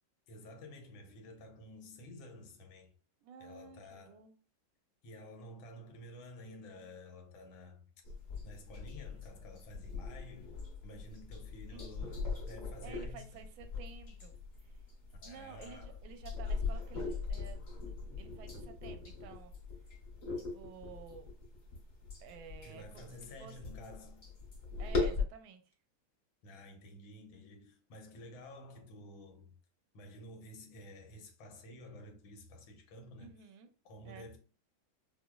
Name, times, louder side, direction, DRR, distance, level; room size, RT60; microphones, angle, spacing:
voice 1, 0.3-2.9 3.4-4.2 5.0-7.9 8.4-13.4 15.1-15.9 22.6-24.3 26.4-29.6 29.9-33.4 33.8-34.4, left 1 dB, 85° left, 1.5 m, -52 dB
voice 2, 3.2-4.4 11.7-11.8 12.8-14.4 14.6-14.8 15.2-17.6 18.2-19.5 20.4-21.3 22.2-23.6 24.8-25.7 33.2-33.7 34.0-34.3, right 7 dB, 85° right, 1.4 m, -52 dB
sound 1, 8.0-25.2, left 4 dB, 45° left, 1.4 m, -40 dB
4.8 x 2.1 x 2.3 m
omnidirectional pair, 2.1 m